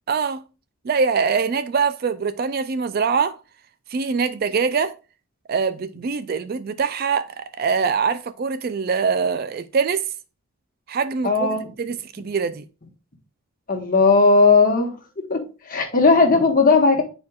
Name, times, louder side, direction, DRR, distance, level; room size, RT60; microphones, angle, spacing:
voice 1, 0.1-0.4 0.8-3.3 3.9-4.9 5.5-10.1 10.9-12.6, right 5 dB, 45° right, 0.3 m, -23 dB
voice 2, 11.2-11.7 13.7-14.9 15.3-15.4 15.7-17.0, left 4 dB, 40° left, 1.3 m, -16 dB
9.4 x 4.4 x 2.3 m
head